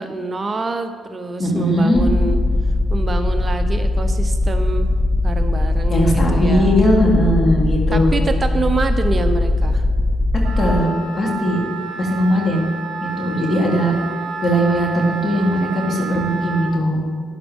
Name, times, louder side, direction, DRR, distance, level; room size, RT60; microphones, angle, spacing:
voice 1, 0.0-2.4 2.9-4.9 5.2-6.8 7.9-9.9, right 3 dB, 35° right, 7 dB, 0.8 m, -26 dB
voice 2, 1.4-2.0 5.9-8.1 10.6-10.9 11.1-11.6 12.0-12.7 13.0-14.0 14.4-17.0, equal, 45° left, -2 dB, 3.2 m, -18 dB
sound 1, 1.9-10.8, left 2 dB, 20° left, 0.4 m, -19 dB
Wind instrument woodwind instrument, 10.4-16.8, right 4 dB, 55° right, 1.7 m, -30 dB
12.5 x 10.5 x 3.6 m, 2.1 s
cardioid pair, 90°, 0 cm